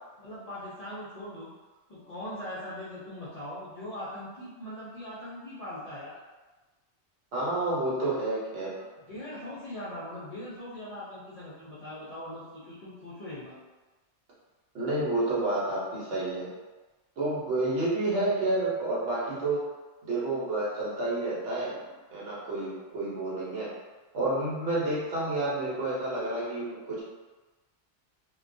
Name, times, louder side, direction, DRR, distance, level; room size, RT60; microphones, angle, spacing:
voice 1, 0.2-1.5 1.9-6.2 8.8-13.6, left 1 dB, 45° left, -9 dB, 0.5 m, -40 dB
voice 2, 7.3-8.7 14.7-16.5 17.2-19.6 20.0-21.7 22.1-23.7 24.1-27.0, right 2 dB, 70° right, -7 dB, 1.0 m, -29 dB
2.3 x 2.2 x 2.5 m, 1.2 s
omnidirectional pair, 1.2 m